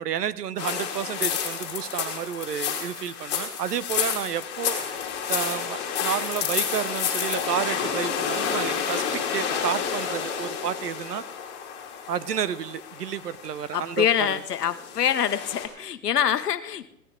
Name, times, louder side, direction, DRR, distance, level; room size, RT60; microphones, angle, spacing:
voice 1, 0.0-5.0 5.3-11.2 12.1-14.4, right 9 dB, 70° right, 16 dB, 1.0 m, -31 dB
sound 1, 0.6-15.7, left 7 dB, 20° left, 3.0 m, -30 dB
voice 2, 13.7-16.9, left 9 dB, 70° left, 12 dB, 1.2 m, -25 dB
17.0 x 12.5 x 3.9 m, 0.78 s
hypercardioid pair, 135°, 49 cm